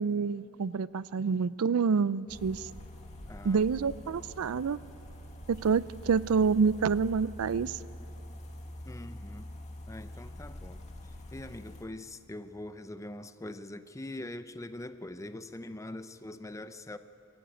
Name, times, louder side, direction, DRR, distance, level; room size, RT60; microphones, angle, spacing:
voice 1, 0.0-2.7 3.4-4.8 5.5-7.8, right 5 dB, 70° right, 18 dB, 0.4 m, -27 dB
sound 1, 2.3-11.8, equal, 30° left, 2.0 m, -45 dB
voice 2, 3.3-3.6 8.8-9.5 9.9-10.8 11.3-17.0, left 1 dB, 15° left, 11 dB, 0.6 m, -43 dB
23.5 x 14.0 x 8.9 m, 2.7 s
head